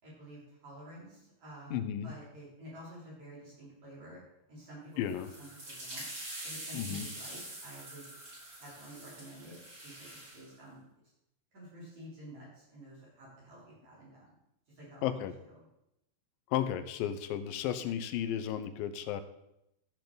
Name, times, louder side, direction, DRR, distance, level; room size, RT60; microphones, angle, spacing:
voice 1, 0.0-4.2 4.5-5.1 5.4-6.0 6.4-8.1 8.6-10.8 11.5-14.3 14.7-15.1, right 1 dB, 55° right, -7 dB, 4.7 m, -50 dB
voice 2, 1.7-2.1 5.0-5.3 6.7-7.1 15.0-15.3 16.5-19.2, left 10 dB, 90° left, 11 dB, 2.5 m, -33 dB
sound 1, 5.0-10.4, right 1 dB, 35° right, 4.9 m, -45 dB
14.5 x 6.8 x 4.0 m, 0.83 s
omnidirectional pair, 3.9 m